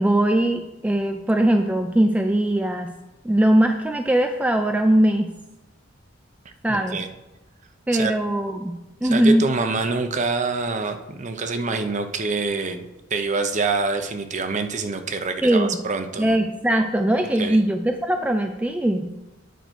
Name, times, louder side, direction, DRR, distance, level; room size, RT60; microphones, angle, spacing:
voice 1, 0.0-2.9 3.2-5.3 6.6-7.0 7.9-9.5 15.4-15.7 16.2-19.1, right 1 dB, 5° right, 5 dB, 0.3 m, -20 dB
voice 2, 6.4-7.1 7.9-8.1 9.0-16.4 17.4-17.6, right 3 dB, 35° right, 8 dB, 0.7 m, -26 dB
9.2 x 6.1 x 4.4 m, 1.0 s
head